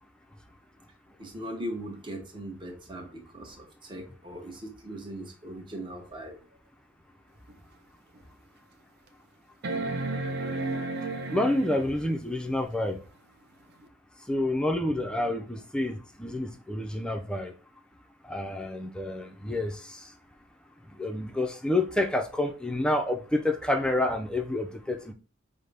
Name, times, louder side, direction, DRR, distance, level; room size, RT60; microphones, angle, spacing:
voice 1, 1.2-6.4, right 1 dB, 25° right, 0.8 m, -39 dB
sound 1, 7.5-7.6 8.2-8.3 9.6-12.1 13.8-13.9, right 2 dB, 55° right, 0.5 m, -32 dB
voice 2, 11.3-13.0 14.3-17.5 18.3-20.0 21.0-25.1, left 1 dB, 5° left, 0.4 m, -28 dB
5.2 x 2.1 x 3.3 m
head